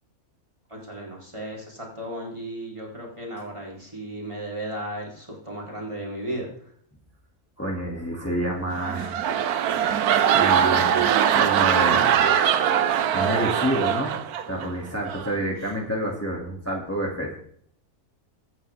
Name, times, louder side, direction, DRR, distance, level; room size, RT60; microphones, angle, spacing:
voice 1, 0.7-6.5, right 1 dB, 20° right, -2 dB, 3.4 m, -35 dB
voice 2, 7.6-9.2 10.3-11.0 11.3-12.2 12.6-14.1 14.4-17.3, right 1 dB, 10° left, -2 dB, 2.3 m, -28 dB
sound 1, 8.7-14.7 15.0-15.4, right 9 dB, 75° right, 1.3 m, -22 dB
23.0 x 9.0 x 3.5 m, 0.63 s
omnidirectional pair, 1.6 m